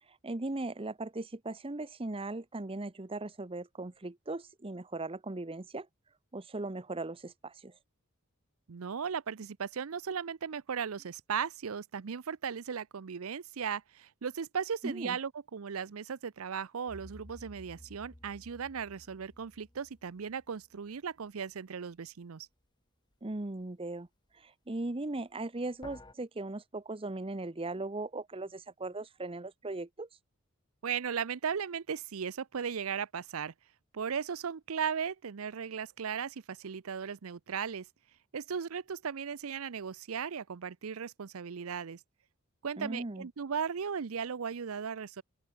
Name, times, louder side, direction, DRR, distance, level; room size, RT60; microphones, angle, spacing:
voice 1, 0.1-5.9 6.3-7.7 14.8-15.2 23.2-24.1 24.3-30.1 42.8-43.3, right 2 dB, 25° right, 0.9 m, -38 dB
voice 2, 8.7-22.5 30.8-33.5 33.9-37.9 38.3-42.0 42.6-45.2, right 7 dB, 80° right, 0.6 m, -37 dB
sound 1, 16.9-21.1 25.8-26.1, left 1 dB, 20° left, 2.0 m, -54 dB
open air
head